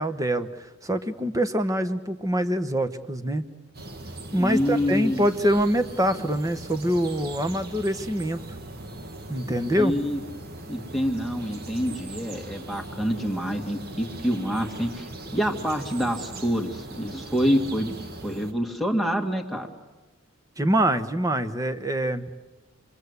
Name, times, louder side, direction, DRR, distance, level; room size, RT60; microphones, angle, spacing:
voice 1, 0.0-3.4 4.3-8.4 9.3-9.9 20.6-22.2, equal, 15° right, 11 dB, 1.1 m, -25 dB
sound 1, 3.7-18.5, right 2 dB, 45° right, 1.7 m, -40 dB
voice 2, 4.4-5.2 9.8-10.2 10.7-18.0 18.2-19.7, equal, ahead, 1 dB, 2.1 m, -27 dB
28.5 x 22.0 x 8.2 m, 1.2 s
head